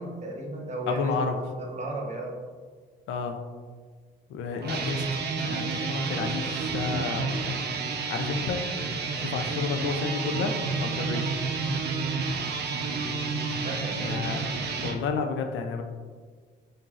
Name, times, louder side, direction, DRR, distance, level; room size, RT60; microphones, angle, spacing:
voice 1, 0.0-2.4 13.6-14.1, right 1 dB, 35° right, -1 dB, 0.9 m, -35 dB
voice 2, 0.9-1.4 3.1-3.4 4.3-7.6 8.1-8.7 9.2-11.3 14.0-14.5 14.8-15.8, left 5 dB, 75° left, 5 dB, 0.5 m, -31 dB
sound 1, 4.6-15.0, right 4 dB, 55° right, 0.5 m, -30 dB
5.6 x 2.6 x 2.4 m, 1.6 s
cardioid pair, 90°, 20 cm